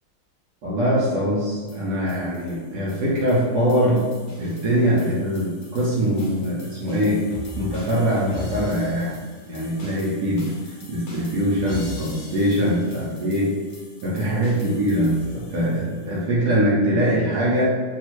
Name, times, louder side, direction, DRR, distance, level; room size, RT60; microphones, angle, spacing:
voice 1, 0.6-4.1 4.4-7.3 7.6-9.2 9.5-10.5 10.9-13.6 14.0-17.7, equal, 65° right, -7 dB, 1.0 m, -22 dB
sound 1, 1.7-16.2, left 2 dB, 55° left, 1.1 m, -40 dB
3.4 x 2.4 x 3.0 m, 1.5 s
omnidirectional pair, 2.2 m